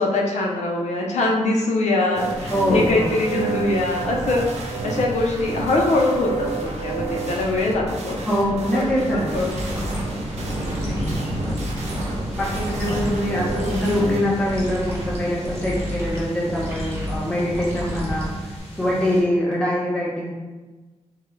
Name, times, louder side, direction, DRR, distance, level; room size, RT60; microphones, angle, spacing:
voice 1, 0.0-4.4 4.8-8.2 8.7-9.5 10.6-10.9, left 2 dB, 85° left, -1 dB, 0.6 m, -23 dB
sound 1, 2.1-14.2, right 3 dB, 70° right, 0.5 m, -30 dB
voice 2, 2.5-3.2 8.3-9.4 12.3-18.3 18.8-20.3, equal, 10° left, -6 dB, 0.7 m, -23 dB
sound 2, 9.3-19.2, equal, 60° left, 1.0 m, -35 dB
sound 3, 9.3-18.6, equal, 25° right, 0.9 m, -31 dB
3.6 x 2.2 x 3.1 m, 1.2 s
wide cardioid pair, 150°, 12 cm